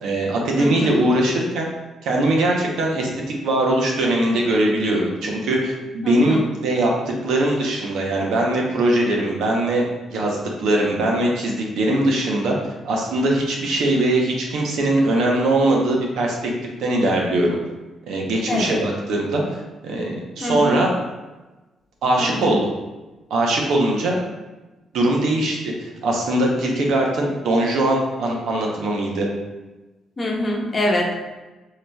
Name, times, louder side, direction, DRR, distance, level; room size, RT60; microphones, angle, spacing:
voice 1, 0.0-1.7 2.0-3.1 3.4-6.9 7.2-9.8 10.1-12.5 12.8-16.4 16.8-17.6 18.1-20.9 22.0-22.6 23.3-24.2 24.9-29.3, right 1 dB, 80° right, -1 dB, 0.8 m, -21 dB
voice 2, 0.6-1.0 6.0-6.4 18.5-18.8 20.4-20.8 22.2-22.5 30.2-31.1, left 1 dB, 30° left, -1 dB, 0.8 m, -24 dB
4.7 x 2.8 x 2.3 m, 1.1 s
cardioid pair, 90°, 0 cm